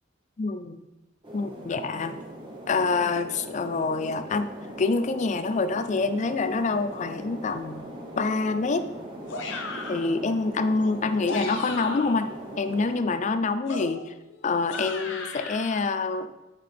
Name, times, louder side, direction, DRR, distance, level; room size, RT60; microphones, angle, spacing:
voice 1, 0.4-0.8 1.3-2.2 2.7-4.5 4.8-7.8 8.2-8.9 9.9-12.3 12.6-14.1 14.4-16.3, left 3 dB, 40° left, 10 dB, 0.4 m, -26 dB
sound 1, 1.2-13.0, right 1 dB, 25° right, 1.0 m, -40 dB
sound 2, 9.3-10.1 11.1-12.3 13.7-15.8, left 3 dB, 65° left, 0.7 m, -36 dB
6.5 x 5.6 x 3.5 m, 0.97 s
head